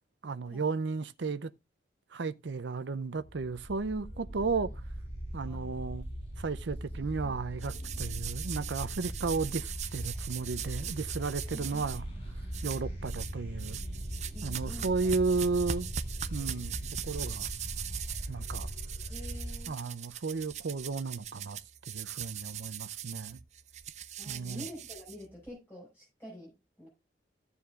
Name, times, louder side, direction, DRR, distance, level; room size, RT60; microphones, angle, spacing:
voice 1, 0.2-1.5 2.1-4.7 5.3-6.1 6.4-12.0 12.6-13.8 14.4-15.9 16.3-16.7 17.0-17.5 18.3-18.7 19.7-21.6 21.9-23.4 24.3-24.7, right 4 dB, 85° right, 0.6 m, -34 dB
sound 1, 3.2-19.7, equal, 35° left, 4.2 m, -39 dB
voice 2, 5.4-5.8 11.5-11.9 14.3-15.1 19.1-19.8 24.2-26.9, left 1 dB, 10° left, 5.4 m, -48 dB
sound 2, 7.6-12.0 12.5-13.3 13.6-25.5, right 10 dB, 40° right, 0.5 m, -41 dB
15.5 x 7.0 x 2.5 m
head